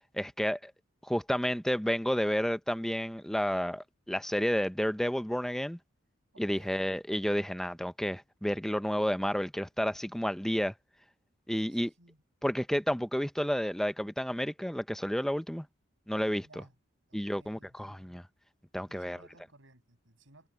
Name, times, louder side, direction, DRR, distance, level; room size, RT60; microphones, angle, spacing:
voice 1, 0.1-0.7 1.0-5.8 6.4-10.7 11.5-11.9 12.4-15.7 16.1-16.5 17.1-18.2 18.7-19.2, equal, ahead, 0.7 m, -31 dB
voice 2, 6.3-6.9 11.5-12.2 16.3-16.7 17.1-18.1 18.9-20.5, right 2 dB, 75° right, 7.6 m, -60 dB
head